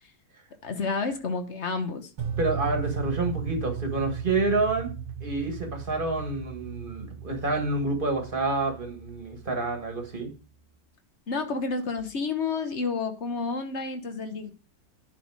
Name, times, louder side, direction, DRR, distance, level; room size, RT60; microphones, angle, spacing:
voice 1, 0.6-2.1 11.3-14.5, left 4 dB, 45° left, 7 dB, 1.1 m, -30 dB
sound 1, 2.2-10.3, right 8 dB, 85° right, 2.5 m, -36 dB
voice 2, 2.4-4.9 5.2-10.3, right 2 dB, 30° right, 4 dB, 1.7 m, -28 dB
10.5 x 4.2 x 4.7 m, 0.34 s
omnidirectional pair, 2.1 m